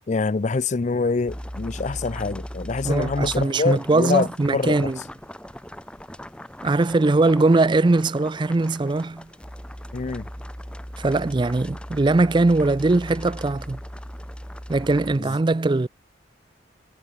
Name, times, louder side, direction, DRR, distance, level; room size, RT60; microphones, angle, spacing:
voice 1, 0.1-4.9 9.9-10.3 15.2-15.4, left 4 dB, 40° left, 0.5 m, -25 dB
sound 1, 1.3-15.2, equal, 5° left, 3.6 m, -38 dB
voice 2, 2.8-5.0 6.6-9.3 11.0-13.8 14.7-15.9, right 2 dB, 25° right, 0.4 m, -21 dB
head